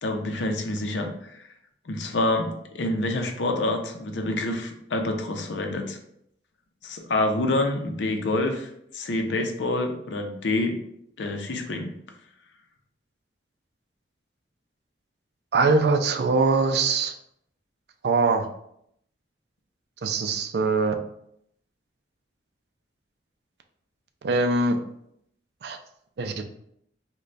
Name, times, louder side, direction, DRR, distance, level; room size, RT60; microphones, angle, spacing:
voice 1, 0.0-1.4 1.9-6.0 6.8-10.8 11.2-12.0, left 2 dB, 85° left, 4 dB, 0.5 m, -27 dB
voice 2, 15.5-17.1 18.0-18.5 20.0-20.9 24.2-24.8 25.6-25.8 26.2-26.4, right 3 dB, 65° right, 6 dB, 0.4 m, -22 dB
3.2 x 2.2 x 3.9 m, 0.73 s
head